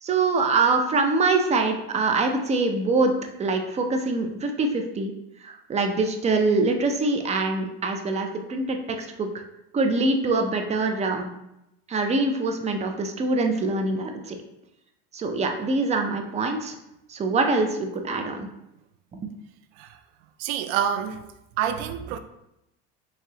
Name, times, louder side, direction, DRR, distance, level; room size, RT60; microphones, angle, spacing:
voice 1, 0.0-3.1 3.4-5.1 5.4-9.3 9.7-11.3 11.9-14.4 15.1-16.7 17.1-18.5 19.1-19.3, right 3 dB, 20° right, 4 dB, 0.5 m, -24 dB
voice 2, 20.4-21.2 21.6-22.2, right 9 dB, 80° right, 9 dB, 0.5 m, -27 dB
4.6 x 2.9 x 2.8 m, 0.86 s
supercardioid pair, 110°, 30 cm